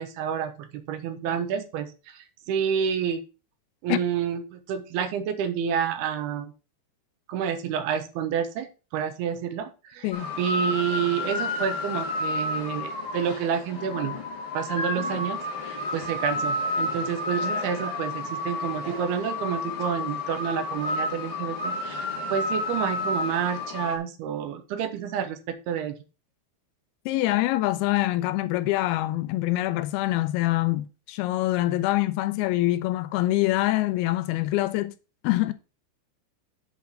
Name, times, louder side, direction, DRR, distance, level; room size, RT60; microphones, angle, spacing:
voice 1, 0.0-3.2 3.8-6.5 7.3-8.7 8.9-10.1 10.4-14.1 14.5-15.4 15.6-26.0, right 8 dB, 80° right, 2.8 m, -29 dB
voice 2, 10.0-10.3 27.1-34.9 35.2-35.5, left 17 dB, 80° left, 2.3 m, -25 dB
sound 1, 10.1-24.0, left 2 dB, 45° left, 1.7 m, -31 dB
8.2 x 3.8 x 6.2 m
omnidirectional pair, 4.8 m